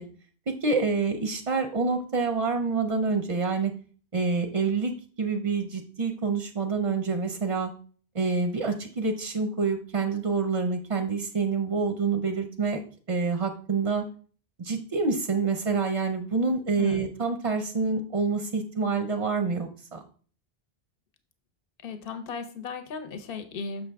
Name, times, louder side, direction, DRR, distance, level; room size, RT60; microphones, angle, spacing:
voice 1, 0.5-3.7 4.1-7.7 8.1-12.8 13.1-14.1 14.6-20.0, right 4 dB, 40° right, 6 dB, 0.5 m, -27 dB
voice 2, 16.8-17.1 21.8-23.9, left 5 dB, 65° left, 9 dB, 1.0 m, -36 dB
6.6 x 5.6 x 3.4 m, 0.42 s
omnidirectional pair, 1.0 m